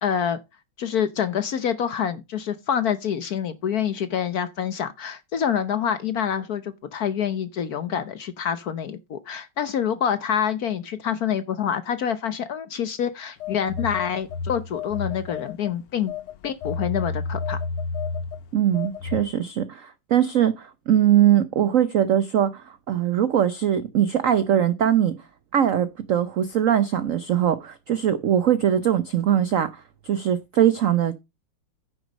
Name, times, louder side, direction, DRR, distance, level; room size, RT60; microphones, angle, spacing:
voice 1, 0.0-0.4 0.8-16.1 16.4-17.6, left 8 dB, 60° left, 1.1 m, -26 dB
Telephone, 13.4-15.7 16.1-19.2, left 4 dB, 80° left, 1.7 m, -31 dB
voice 2, 18.5-25.1 25.5-29.7 30.0-31.2, right 10 dB, 85° right, 0.7 m, -21 dB
9.7 x 6.2 x 5.1 m
omnidirectional pair, 2.3 m